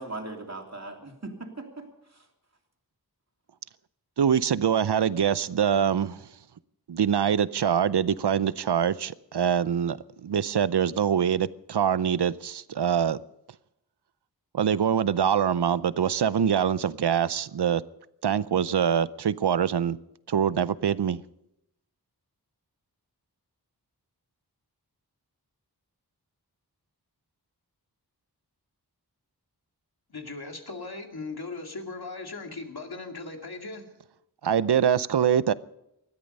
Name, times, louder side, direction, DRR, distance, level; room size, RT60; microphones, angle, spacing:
voice 1, 0.0-2.3, right 2 dB, 40° right, 3.0 m, -39 dB
voice 2, 4.2-6.2 6.9-13.2 14.5-17.8 18.2-20.0 20.3-21.2 34.4-35.5, right 8 dB, 80° right, 0.6 m, -24 dB
voice 3, 30.1-33.8, left 3 dB, 70° left, 2.3 m, -38 dB
20.0 x 13.5 x 5.4 m
wide cardioid pair, 65°, 39 cm